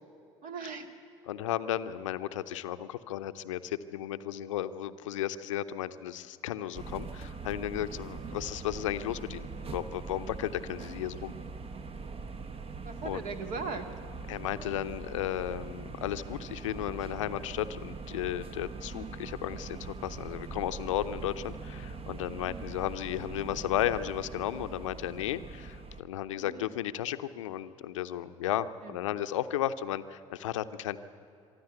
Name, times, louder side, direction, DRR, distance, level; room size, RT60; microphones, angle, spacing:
voice 1, 0.4-0.9 8.1-8.4 12.8-13.9 18.8-19.2 22.4-22.7 26.4-26.7 28.8-29.0, right 4 dB, 55° right, 6 dB, 2.0 m, -40 dB
voice 2, 1.3-11.3 13.0-13.2 14.3-31.0, left 12 dB, 75° left, 12 dB, 0.7 m, -34 dB
sound 1, 6.7-26.0, right 4 dB, 35° right, 1.0 m, -42 dB
23.5 x 13.5 x 8.2 m, 2.7 s
figure-of-eight pair, 60°, 16 cm